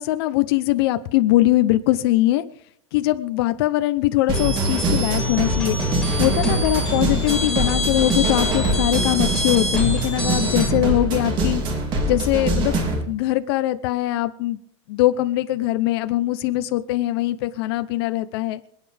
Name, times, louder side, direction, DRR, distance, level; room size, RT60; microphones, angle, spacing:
voice 1, 0.0-2.4 2.9-5.8 6.2-11.6 12.1-12.8 13.1-14.6 14.9-18.6, left 15 dB, 50° left, 10 dB, 0.8 m, -21 dB
sound 1, 4.3-10.7, left 2 dB, 5° left, 3.0 m, -27 dB
sound 2, 4.3-13.0, right 2 dB, 30° right, 3.1 m, -23 dB
27.0 x 9.3 x 3.5 m, 0.68 s
supercardioid pair, 165°, 16 cm